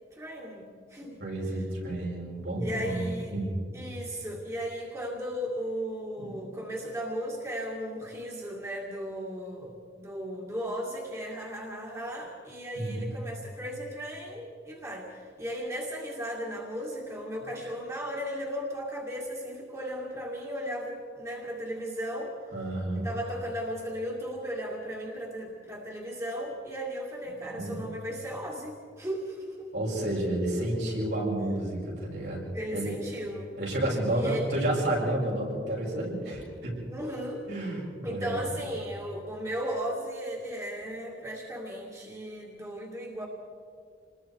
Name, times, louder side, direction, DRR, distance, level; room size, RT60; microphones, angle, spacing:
voice 1, 0.1-1.2 1.5-1.6 2.6-3.3 3.7-22.3 22.9-29.7 32.5-33.6 34.0-34.7 36.9-37.4 38.0-43.3, equal, 15° right, -2 dB, 2.3 m, -36 dB
voice 2, 1.2-3.0 3.3-3.5 6.2-6.4 12.8-13.1 22.5-23.1 27.5-27.8 29.7-32.4 32.7-33.0 33.6-36.7 37.5-38.4, right 1 dB, 75° right, -4 dB, 7.7 m, -30 dB
27.5 x 21.0 x 4.8 m, 2.3 s
head